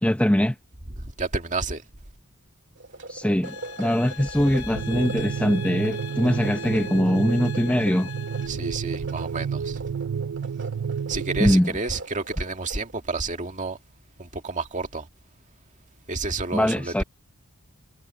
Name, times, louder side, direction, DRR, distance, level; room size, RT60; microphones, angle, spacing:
voice 1, 0.0-0.6 3.1-8.1 11.4-11.7 16.5-17.0, equal, 5° left, 0.7 m, -22 dB
voice 2, 1.0-1.8 4.8-4.9 8.5-9.8 11.1-13.8 14.2-15.1 16.1-17.0, right 3 dB, 35° right, 2.1 m, -30 dB
sound 1, 2.8-12.9, right 2 dB, 55° right, 2.5 m, -41 dB
sound 2, 3.4-8.5, left 7 dB, 80° left, 3.0 m, -41 dB
sound 3, 4.7-11.6, right 6 dB, 80° right, 0.5 m, -30 dB
head